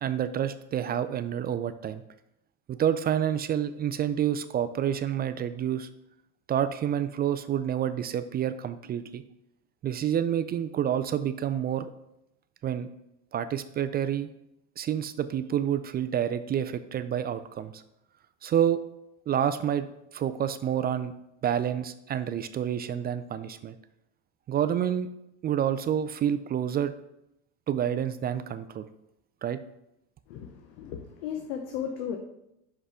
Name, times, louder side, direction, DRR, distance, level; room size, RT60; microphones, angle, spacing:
voice 1, 0.0-2.0 2.7-5.9 6.5-9.2 9.8-11.9 12.6-12.9 13.3-14.3 14.8-17.8 18.4-18.8 19.3-19.9 20.1-21.1 21.4-23.8 24.5-25.1 25.4-26.9 27.7-28.9 29.4-29.6, right 9 dB, 30° right, 12 dB, 0.3 m, -28 dB
voice 2, 30.3-32.2, left 8 dB, 85° left, 4 dB, 0.9 m, -35 dB
5.7 x 5.6 x 4.8 m, 0.83 s
supercardioid pair, 105°, 34 cm